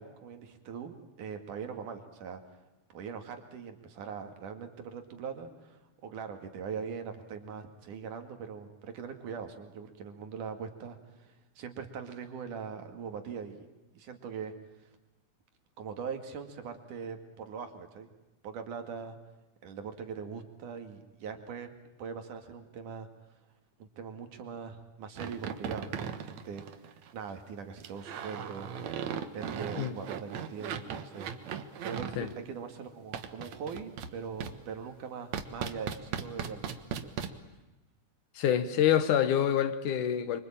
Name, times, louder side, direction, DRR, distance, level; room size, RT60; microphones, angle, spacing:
voice 1, 0.0-2.4 2.9-13.7 13.9-14.5 15.8-18.1 18.4-19.2 19.6-21.7 22.0-23.1 23.8-36.7 37.0-37.1, right 6 dB, 85° right, 3.8 m, -41 dB
sound 1, 25.2-27.1 27.8-32.3 33.1-34.1 34.4-34.5 35.3-37.3, right 7 dB, 65° right, 2.6 m, -37 dB
voice 2, 38.4-40.4, left 10 dB, 80° left, 2.8 m, -26 dB
26.5 x 25.0 x 8.9 m
omnidirectional pair, 3.5 m